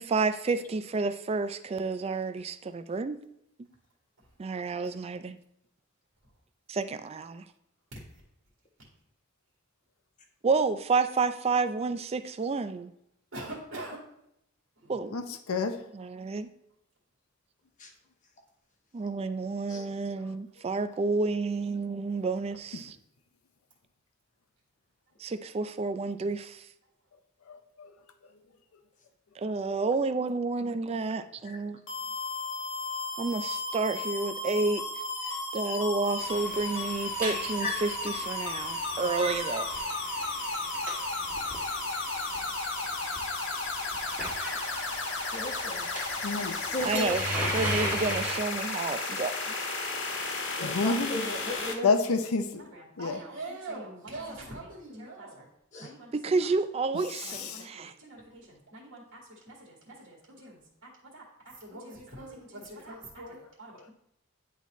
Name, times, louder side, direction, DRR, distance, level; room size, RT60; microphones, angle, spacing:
voice 1, 0.0-3.2 4.4-5.4 6.7-7.4 10.4-12.9 14.9-15.1 15.9-16.5 18.9-23.0 25.2-26.7 29.4-31.8 33.2-34.8 35.2-39.9 46.8-47.2 47.5-49.7 56.1-57.9, right 3 dB, 30° right, 12 dB, 0.3 m, -30 dB
voice 2, 13.3-14.0 52.6-55.5 55.8-56.5 57.2-63.9, right 2 dB, 70° right, -3 dB, 1.8 m, -44 dB
voice 3, 27.5-27.9 46.2-46.7 50.6-51.2 51.8-52.5 53.0-53.1 57.3-57.6, left 4 dB, 90° left, 8 dB, 0.6 m, -28 dB
sound 1, 31.9-51.7, left 3 dB, 60° left, 1.2 m, -34 dB
sound 2, 36.2-48.4, right 1 dB, 10° right, 1.6 m, -38 dB
voice 4, 37.2-37.8 45.3-45.9 46.7-47.1 50.6-51.9 55.7-55.9, left 2 dB, 35° left, 2 dB, 1.1 m, -35 dB
10.0 x 4.0 x 3.1 m, 0.78 s
head